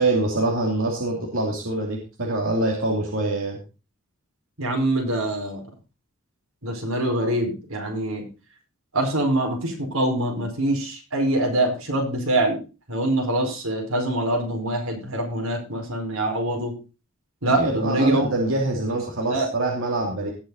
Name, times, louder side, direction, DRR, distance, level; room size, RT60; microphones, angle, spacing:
voice 1, 0.0-3.6 17.6-20.3, right 2 dB, 65° right, -1 dB, 2.8 m, -24 dB
voice 2, 4.6-5.6 6.6-8.2 8.9-12.6 12.9-16.7 17.4-18.3 19.2-19.5, right 1 dB, 85° right, 1 dB, 4.7 m, -24 dB
18.5 x 6.3 x 4.0 m, 0.32 s
head